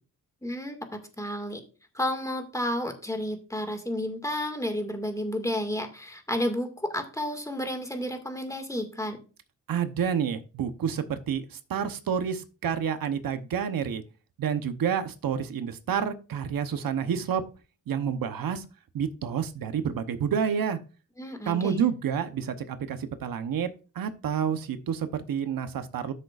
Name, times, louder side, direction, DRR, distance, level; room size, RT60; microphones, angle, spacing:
voice 1, 0.4-0.8 1.2-1.6 1.9-9.2 21.2-21.9, left 1 dB, 10° left, 6 dB, 2.0 m, -31 dB
voice 2, 9.7-14.0 14.4-17.5 17.9-18.6 18.9-20.8 21.5-23.7 23.9-26.1, right 7 dB, 85° right, 10 dB, 1.0 m, -29 dB
13.0 x 6.7 x 2.5 m, 0.35 s
cardioid pair, 90°, 34 cm